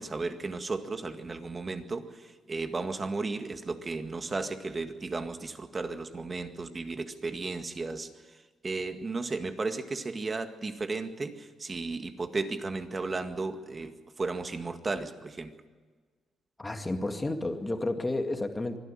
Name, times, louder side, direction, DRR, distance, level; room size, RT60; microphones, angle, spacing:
voice 1, 0.0-8.1 8.6-15.6, right 3 dB, 30° right, 7 dB, 1.9 m, -34 dB
voice 2, 16.6-18.8, left 2 dB, 20° left, 5 dB, 2.2 m, -31 dB
24.5 x 12.0 x 9.8 m, 1.4 s
cardioid pair, 90°, 0 cm